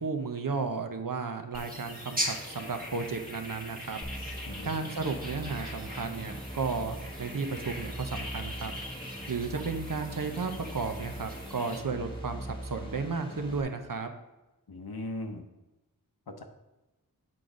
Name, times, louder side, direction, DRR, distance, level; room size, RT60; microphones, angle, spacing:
voice 1, 0.0-4.0 4.3-4.4 4.6-8.8 9.3-14.1, right 4 dB, 60° right, 6 dB, 0.7 m, -34 dB
sound 1, 1.5-11.8, equal, 25° right, 1.4 m, -40 dB
sound 2, 4.0-13.6, equal, 15° left, 1.3 m, -41 dB
voice 2, 14.7-15.5 16.3-16.4, left 1 dB, 85° left, 5 dB, 0.8 m, -38 dB
7.5 x 3.9 x 5.0 m, 1.0 s
wide cardioid pair, 60°, 37 cm